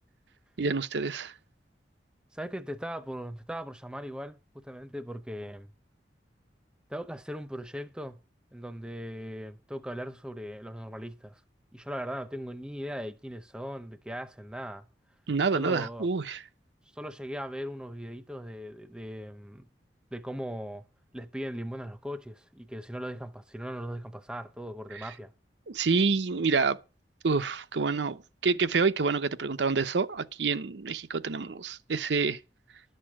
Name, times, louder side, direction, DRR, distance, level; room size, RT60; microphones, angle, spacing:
voice 1, 0.6-1.3 15.3-16.4 24.9-25.1 25.7-26.8 27.2-32.4, right 4 dB, 80° right, 0.7 m, -28 dB
voice 2, 2.3-5.7 6.9-8.2 8.5-11.4 11.7-14.9 15.5-16.1 17.0-19.7 20.1-20.8 21.1-25.3, equal, 5° right, 0.7 m, -39 dB
11.5 x 6.7 x 7.4 m
head